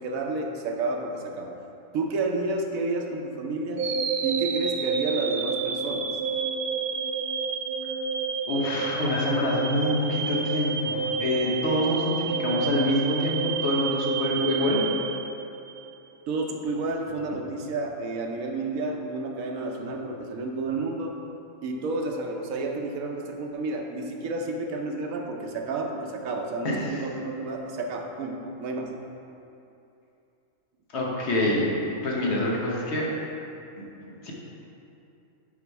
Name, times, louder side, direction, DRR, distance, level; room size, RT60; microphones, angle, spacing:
voice 1, 0.0-1.5 1.9-3.9 4.2-6.1 16.3-21.2 21.6-28.9, right 2 dB, 90° right, 2 dB, 1.2 m, -30 dB
sound 1, 3.8-15.9, right 6 dB, 70° right, 0.5 m, -29 dB
voice 2, 8.5-14.8 26.6-27.0 30.9-31.7 32.0-33.1 33.8-33.9 34.2-34.3, left 1 dB, 55° left, -3 dB, 1.2 m, -26 dB
6.0 x 5.0 x 4.6 m, 2.7 s
omnidirectional pair, 1.4 m